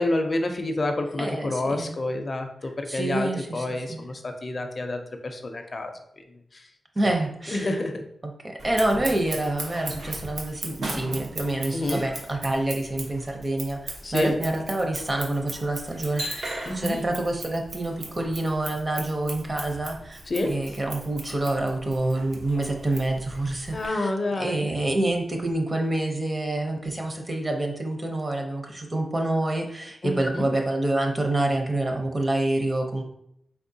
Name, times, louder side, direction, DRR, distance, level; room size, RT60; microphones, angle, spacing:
voice 1, 0.0-5.9 6.5-6.6 7.5-8.0 11.7-12.0 14.0-14.3 16.7-17.0 20.3-20.5 23.7-24.7 30.0-30.4, left 2 dB, 35° left, 5 dB, 0.4 m, -28 dB
voice 2, 1.2-1.9 2.9-4.0 7.0-7.8 8.4-33.0, right 2 dB, 25° right, 2 dB, 0.6 m, -27 dB
Scissors, 8.6-23.9, right 2 dB, 80° right, 0.9 m, -38 dB
4.3 x 3.5 x 2.6 m, 0.72 s
wide cardioid pair, 150°, 0 cm